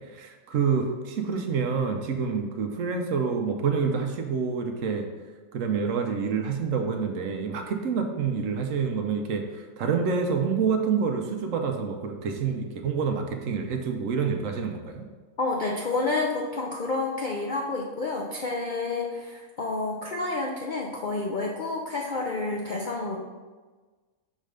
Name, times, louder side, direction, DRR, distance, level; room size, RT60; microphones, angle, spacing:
voice 1, 0.1-5.1 5.5-15.1, right 5 dB, 70° right, 4 dB, 1.0 m, -27 dB
voice 2, 15.4-23.2, left 3 dB, 60° left, -1 dB, 0.5 m, -29 dB
6.3 x 3.2 x 5.1 m, 1.3 s
omnidirectional pair, 1.5 m